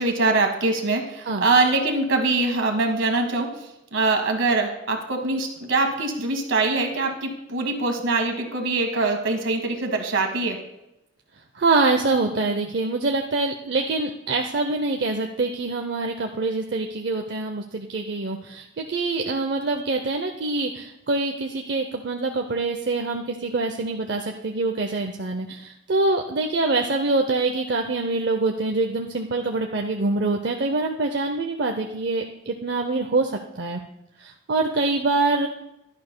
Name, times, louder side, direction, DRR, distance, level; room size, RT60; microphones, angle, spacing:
voice 1, 0.0-3.5 3.9-10.6, right 3 dB, 75° right, 4 dB, 1.5 m, -23 dB
voice 2, 11.5-33.8 34.2-35.5, right 3 dB, 55° right, 3 dB, 0.6 m, -25 dB
16.0 x 11.5 x 2.2 m, 0.88 s
head